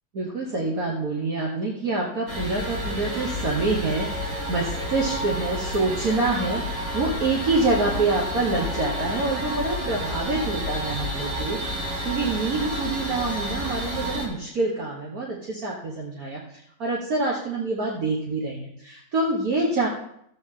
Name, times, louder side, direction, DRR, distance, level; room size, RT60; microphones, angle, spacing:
voice 1, 0.1-19.9, right 3 dB, 55° right, -2 dB, 1.8 m, -26 dB
sound 1, 2.3-14.3, equal, 80° right, 3.6 m, -30 dB
13.5 x 8.0 x 3.8 m, 0.73 s
omnidirectional pair, 1.9 m